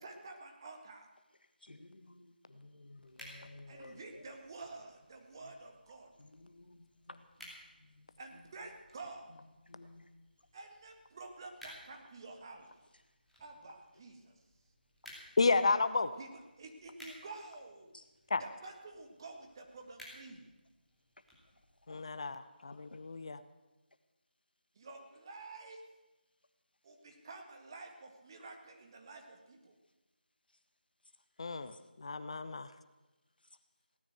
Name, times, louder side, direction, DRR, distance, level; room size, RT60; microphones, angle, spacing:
voice 1, 0.0-1.1 3.7-6.1 8.2-9.3 10.5-12.7 13.4-14.3 16.2-17.9 18.4-20.5 24.7-25.8 26.8-29.7, right 3 dB, 25° right, 3 dB, 1.7 m, -50 dB
voice 2, 1.6-4.4 5.4-5.6 6.2-7.5 7.8-8.5 9.7-10.1 17.9-18.0 21.9-22.0 22.9-23.0 31.7-31.8, left 2 dB, 65° left, 9 dB, 1.7 m, -55 dB
sound 1, 3.0-22.0, equal, ahead, 2.7 m, -59 dB
voice 3, 15.4-16.1 18.3-18.4 21.9-23.4 31.4-32.7, left 4 dB, 35° left, 13 dB, 0.7 m, -32 dB
17.5 x 9.7 x 8.0 m, 1.1 s
figure-of-eight pair, 165°, 5 cm